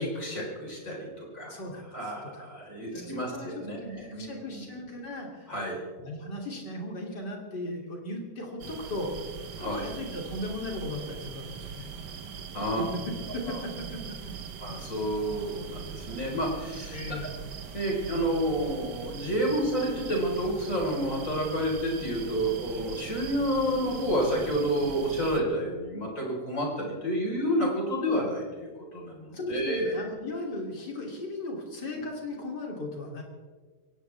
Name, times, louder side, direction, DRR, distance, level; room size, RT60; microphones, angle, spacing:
voice 1, 0.0-1.5 1.9-4.3 4.5-4.7 5.5-5.8 9.6-9.8 12.5-12.8 13.5-13.6 14.6-17.0 17.7-30.1 32.0-32.1, equal, 50° left, -2 dB, 5.2 m, -30 dB
voice 2, 1.4-2.4 2.9-5.5 6.0-9.1 9.5-11.9 12.5-14.3 16.9-17.3 29.3-33.2, left 1 dB, 85° left, 0 dB, 3.7 m, -37 dB
sound 1, 8.6-25.4, right 7 dB, 85° right, 1.7 m, -41 dB
22.5 x 18.5 x 3.5 m, 1.5 s
omnidirectional pair, 1.8 m